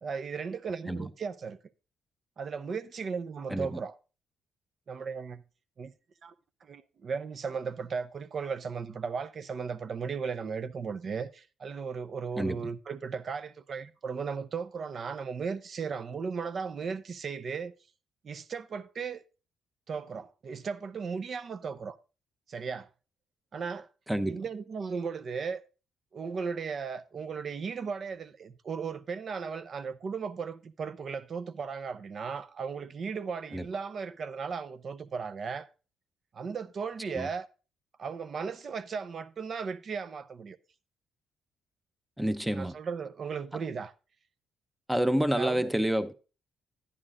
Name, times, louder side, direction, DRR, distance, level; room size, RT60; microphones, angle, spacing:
voice 1, 0.0-1.6 2.4-3.9 4.9-5.4 5.8-5.9 6.2-6.3 6.6-17.7 18.2-19.2 19.9-22.0 22.5-22.9 23.5-23.9 24.3-25.6 26.1-35.7 36.3-37.5 38.0-40.6 42.6-43.9 45.3-45.7, right 5 dB, 50° right, 0.6 m, -36 dB
voice 2, 3.5-3.8 12.4-12.7 24.1-24.4 33.5-33.7 37.1-37.3 42.2-42.8 44.9-46.1, right 1 dB, 5° right, 0.7 m, -28 dB
11.0 x 9.8 x 2.4 m
cardioid pair, 90°, 0 cm